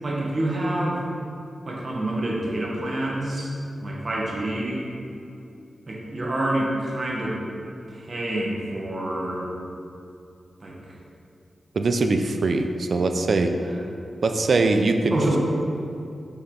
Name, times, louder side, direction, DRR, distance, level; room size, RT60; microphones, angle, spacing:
voice 1, 0.0-1.1 1.6-3.5 3.8-4.8 5.9-7.4 7.9-9.5 10.6-10.7 15.1-15.4, right 1 dB, 45° right, -3 dB, 1.4 m, -27 dB
voice 2, 11.7-13.5 14.2-15.2, right 3 dB, 60° right, 6 dB, 0.5 m, -22 dB
6.9 x 5.5 x 3.9 m, 2.6 s
wide cardioid pair, 100°, 0 cm